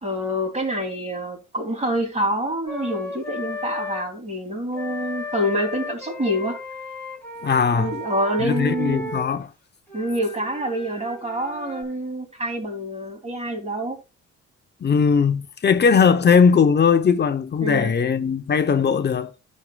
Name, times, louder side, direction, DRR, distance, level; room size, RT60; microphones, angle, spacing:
voice 1, 0.0-6.6 7.7-9.1 9.9-14.0 17.6-17.9, equal, 20° right, 2.9 m, -26 dB
Wind instrument woodwind instrument, 2.7-4.1 4.7-9.3 9.9-11.8, left 2 dB, 5° left, 3.2 m, -34 dB
voice 2, 7.4-7.9 8.4-9.5 14.8-19.3, left 6 dB, 35° left, 0.7 m, -19 dB
10.5 x 6.5 x 2.3 m
cardioid pair, 90°, 30 cm